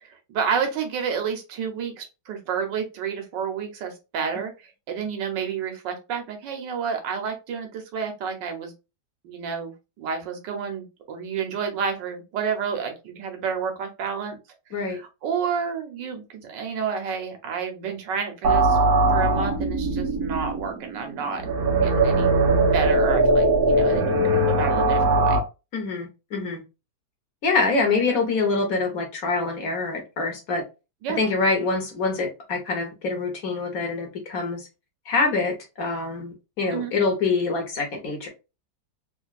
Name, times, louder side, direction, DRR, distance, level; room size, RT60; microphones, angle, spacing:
voice 1, 0.0-8.7 9.2-9.7 10.0-14.4 14.8-18.8 19.1-21.5 21.8-22.3 22.7-25.4 31.0-31.2 36.7-36.9, right 6 dB, 80° right, 5 dB, 1.6 m, -30 dB
sound 1, 18.4-25.4, right 2 dB, 60° right, 1.3 m, -20 dB
voice 2, 25.7-26.6 27.4-30.6 31.2-34.7 35.1-38.3, left 3 dB, 55° left, 3 dB, 1.3 m, -25 dB
3.8 x 2.6 x 2.3 m, 0.28 s
omnidirectional pair, 1.9 m